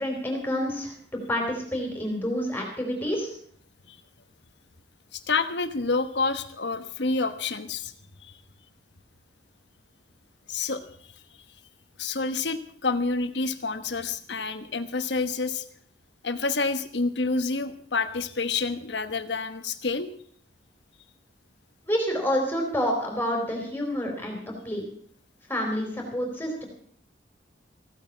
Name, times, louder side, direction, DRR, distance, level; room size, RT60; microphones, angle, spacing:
voice 1, 0.0-3.3 21.9-24.8 25.5-26.7, equal, 10° left, 1 dB, 4.0 m, -28 dB
voice 2, 5.1-7.9 8.2-8.4 10.5-10.8 12.0-15.6 16.2-20.1, left 4 dB, 75° left, 10 dB, 1.2 m, -28 dB
15.5 x 9.2 x 7.3 m, 0.62 s
head